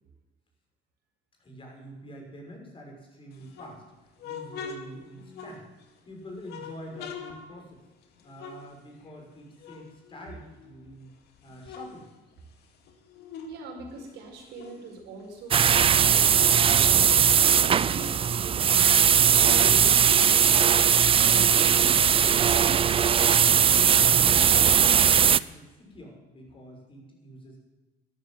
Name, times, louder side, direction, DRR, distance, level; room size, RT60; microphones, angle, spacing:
voice 1, 1.4-3.8 4.2-5.6 6.1-7.8 8.2-11.1 11.4-12.1 24.0-27.6, equal, 30° left, 0 dB, 6.0 m, -45 dB
sound 1, 3.3-6.0 6.4-9.3 9.6-10.9 11.3-13.6 13.9-16.5 16.8-16.9 17.2-20.6, left 5 dB, 75° left, 2.3 m, -44 dB
voice 2, 13.5-19.0 19.4-20.5 21.1-22.8, right 3 dB, 80° right, 1 dB, 4.9 m, -42 dB
sound 2, 15.5-25.4, right 8 dB, 35° right, 0.5 m, -19 dB
12.5 x 12.0 x 7.6 m, 1.2 s
cardioid pair, 110°, 17 cm